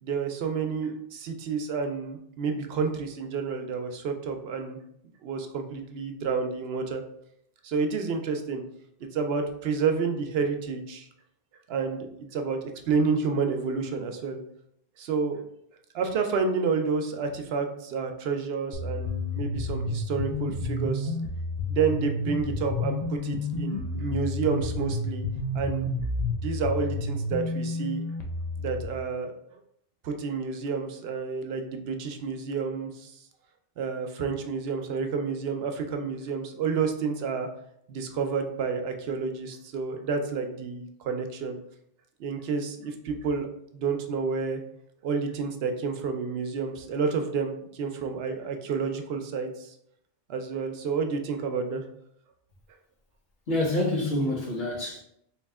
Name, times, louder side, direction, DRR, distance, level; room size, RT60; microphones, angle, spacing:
voice 1, 0.0-4.8 5.2-7.0 7.6-8.6 9.1-11.1 11.7-12.6 12.9-14.4 15.0-15.4 15.9-21.1 21.7-25.2 25.5-25.9 26.4-28.0 28.6-29.3 30.0-33.2 33.8-37.5 37.9-41.6 42.2-43.5 43.7-44.6 45.0-49.7 50.3-51.8, right 5 dB, 75° right, 0.8 m, -29 dB
sound 1, 18.7-28.8, left 2 dB, 50° left, 0.6 m, -30 dB
voice 2, 53.5-55.0, left 1 dB, 70° left, 1.2 m, -27 dB
3.2 x 2.9 x 3.5 m
omnidirectional pair, 1.0 m